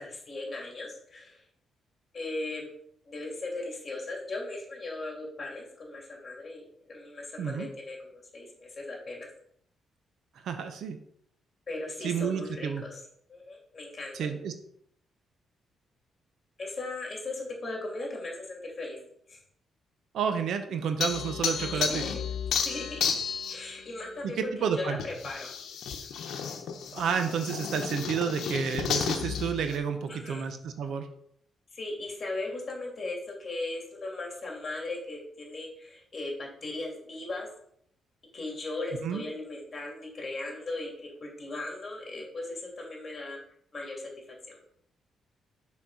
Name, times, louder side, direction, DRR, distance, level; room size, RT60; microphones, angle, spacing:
voice 1, 0.0-1.4 2.1-2.7 3.0-9.3 11.7-13.0 13.3-14.3 16.6-19.0 19.3-19.4 21.7-22.1 22.6-23.1 23.5-25.5 30.1-30.4 31.7-37.5 38.3-43.4 43.7-44.1 44.5-44.6, left 2 dB, 30° left, -1 dB, 2.7 m, -38 dB
voice 2, 10.4-11.0 12.0-12.8 14.1-14.5 20.1-22.0 24.4-25.0 26.9-31.1 39.0-39.2, right 7 dB, 70° right, 7 dB, 0.8 m, -30 dB
sound 1, 21.0-23.7 25.0-29.8, left 7 dB, 80° left, 0.9 m, -32 dB
6.2 x 4.2 x 5.5 m, 0.69 s
cardioid pair, 125°, 0 cm